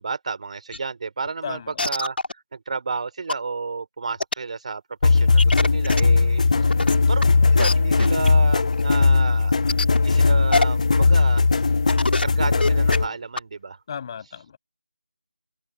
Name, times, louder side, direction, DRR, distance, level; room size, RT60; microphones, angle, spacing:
voice 1, 0.0-6.4 7.1-7.2 7.5-9.7 10.0-11.4 12.2-13.8, right 4 dB, 35° right, 4.4 m, -31 dB
sound 1, 0.7-0.8 1.3-1.4 1.8-2.3 2.9-3.0 3.3-3.4 4.2-4.3 5.4-6.0 6.7-7.2 7.6-7.7 8.0-8.3 8.7-8.8 9.7-10.0 10.5-10.6 11.0-11.1 11.6-11.7 11.9-12.2 12.5-13.0 13.4-13.5, left 2 dB, 65° left, 2.7 m, -23 dB
voice 2, 1.4-1.8 6.5-7.1 13.9-14.6, left 7 dB, 25° left, 7.6 m, -36 dB
sound 2, 5.0-13.1, left 4 dB, 40° left, 1.4 m, -18 dB
figure-of-eight pair, 165°, 6 cm